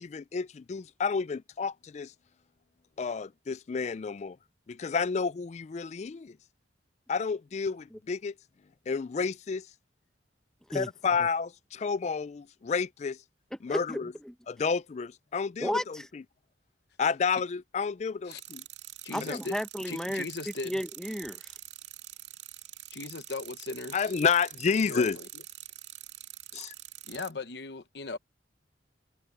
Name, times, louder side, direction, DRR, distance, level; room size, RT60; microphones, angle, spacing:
voice 1, 0.0-2.1 3.0-4.4 4.7-6.4 7.1-8.3 8.9-9.7 10.7-13.2 13.6-14.1 14.5-16.2 17.0-18.6 19.2-19.4 23.9-25.2 26.5-26.7, left 5 dB, 35° left, 0.3 m, -30 dB
voice 2, 13.7-14.3 15.6-16.1 19.1-20.3 20.6-21.6, equal, 5° left, 0.8 m, -33 dB
sound 1, 18.3-27.3, right 13 dB, 70° right, 2.1 m, -46 dB
voice 3, 19.0-19.5 19.8-20.8 22.9-24.1 24.9-25.3 27.1-28.2, left 3 dB, 60° left, 1.0 m, -38 dB
head